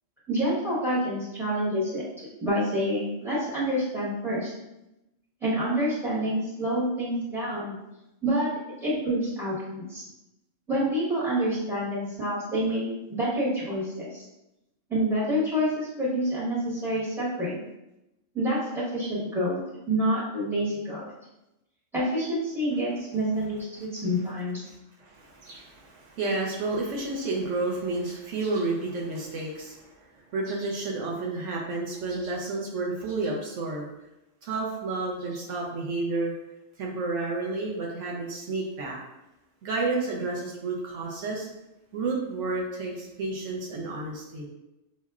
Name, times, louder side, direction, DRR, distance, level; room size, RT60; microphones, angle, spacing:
voice 1, 0.3-2.1 2.4-4.5 5.4-7.8 8.2-8.5 8.8-10.0 10.7-14.2 14.9-17.6 18.3-19.6 19.9-21.1 21.9-24.6, equal, ahead, -8 dB, 1.1 m, -27 dB
voice 2, 25.0-33.9 34.4-36.3 36.8-39.0 39.6-41.5 41.9-44.5, right 3 dB, 75° right, -2 dB, 1.0 m, -31 dB
5.4 x 2.1 x 2.3 m, 0.91 s
omnidirectional pair, 1.3 m